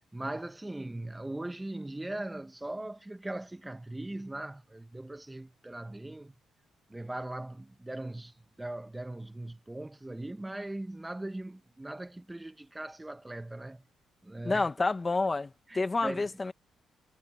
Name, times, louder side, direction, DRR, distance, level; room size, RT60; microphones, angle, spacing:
voice 1, 0.1-6.3 6.9-13.8 14.2-14.7 15.7-16.3, right 1 dB, 10° right, 1.3 m, -40 dB
voice 2, 14.4-16.5, left 3 dB, 25° left, 1.8 m, -29 dB
cardioid pair, 90°, 0 cm